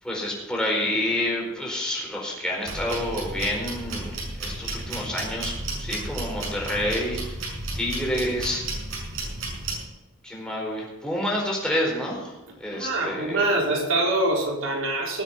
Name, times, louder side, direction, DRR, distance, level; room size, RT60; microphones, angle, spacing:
voice 1, 0.0-8.7 10.2-13.6, left 1 dB, 5° left, -3 dB, 4.7 m, -29 dB
sound 1, 2.6-9.8, right 2 dB, 70° right, 6.4 m, -33 dB
voice 2, 12.7-15.2, right 2 dB, 90° right, 0 dB, 3.8 m, -24 dB
19.0 x 8.0 x 5.9 m, 1.0 s
head